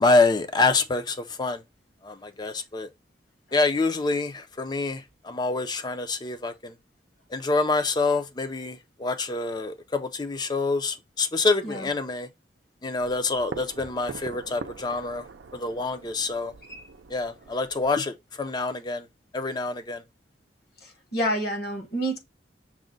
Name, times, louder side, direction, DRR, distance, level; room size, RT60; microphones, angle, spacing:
voice 1, 0.0-1.6 2.0-2.9 3.5-6.7 7.3-12.3 12.8-15.2 15.5-16.5 17.1-19.1 19.3-20.0, left 3 dB, 25° left, 0.5 m, -26 dB
voice 2, 11.6-11.9 16.7-16.9 20.8-22.2, right 1 dB, 60° left, 1.3 m, -29 dB
sound 1, 13.0-18.0, right 4 dB, 85° right, 0.5 m, -43 dB
6.1 x 2.1 x 3.8 m
head